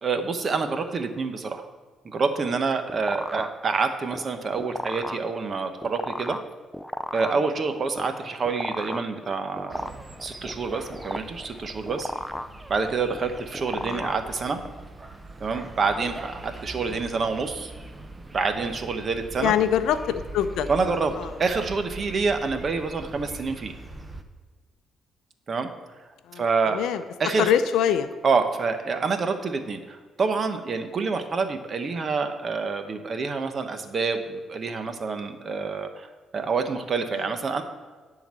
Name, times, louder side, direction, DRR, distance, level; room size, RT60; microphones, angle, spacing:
voice 1, 0.0-1.7 2.0-6.4 7.1-9.9 10.2-12.1 12.7-14.6 15.4-17.7 18.3-19.5 20.7-21.1 21.4-23.7 25.5-25.7 26.4-26.8 27.2-27.5 28.2-36.1 36.3-37.6, right 4 dB, 45° right, 7 dB, 1.0 m, -27 dB
sound 1, 2.4-14.8, equal, ahead, 0.4 m, -36 dB
sound 2, 9.7-24.2, right 2 dB, 20° right, 0.8 m, -42 dB
voice 2, 13.7-14.0 16.9-17.0 19.4-20.7 21.2-21.3 26.3-27.0 27.4-28.1 37.1-37.3, left 9 dB, 85° left, 10 dB, 0.5 m, -24 dB
10.5 x 3.9 x 7.5 m, 1.4 s
cardioid pair, 90°, 0 cm